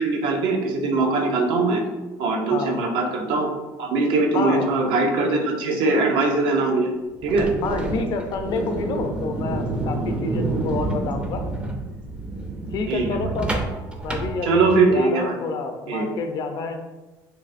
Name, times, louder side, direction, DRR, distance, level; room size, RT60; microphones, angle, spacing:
voice 1, 0.0-1.8 2.2-3.5 3.8-6.9 7.2-7.5 12.9-13.1 14.4-15.4 15.9-16.1, right 3 dB, 70° right, 2 dB, 0.5 m, -21 dB
voice 2, 2.5-2.8 4.3-4.7 7.6-11.4 12.7-13.6 14.0-16.8, left 4 dB, 55° left, 6 dB, 0.4 m, -29 dB
sound 1, 7.2-15.0, right 2 dB, 15° right, 0.4 m, -28 dB
3.2 x 2.5 x 2.5 m, 1.1 s
cardioid pair, 115°, 9 cm